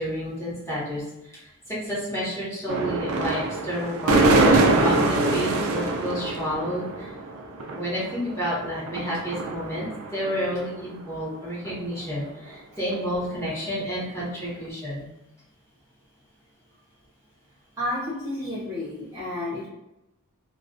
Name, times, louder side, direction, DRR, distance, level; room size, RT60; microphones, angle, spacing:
voice 1, 0.0-1.4 1.7-7.1 7.7-15.1, equal, 15° left, -9 dB, 0.9 m, -30 dB
sound 1, 2.7-10.6 11.0-11.1 11.6-11.8 12.3-12.4 12.9-13.3 14.2-14.3, right 2 dB, 70° right, 0.4 m, -24 dB
voice 2, 17.8-19.7, left 1 dB, 15° right, -10 dB, 0.6 m, -31 dB
2.3 x 2.2 x 2.4 m, 0.89 s
head